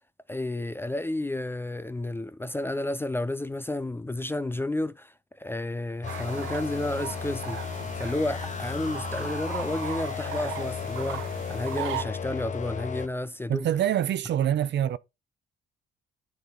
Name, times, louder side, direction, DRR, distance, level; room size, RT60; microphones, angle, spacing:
voice 1, 0.3-13.7, left 1 dB, 10° left, 0.4 m, -31 dB
sound 1, 6.0-13.1, left 7 dB, 40° left, 0.8 m, -34 dB
sound 2, 6.1-12.0, right 11 dB, 90° right, 1.0 m, -38 dB
voice 2, 13.5-15.0, right 10 dB, 65° right, 0.6 m, -25 dB
9.7 x 4.2 x 3.8 m
cardioid pair, 90°, 20 cm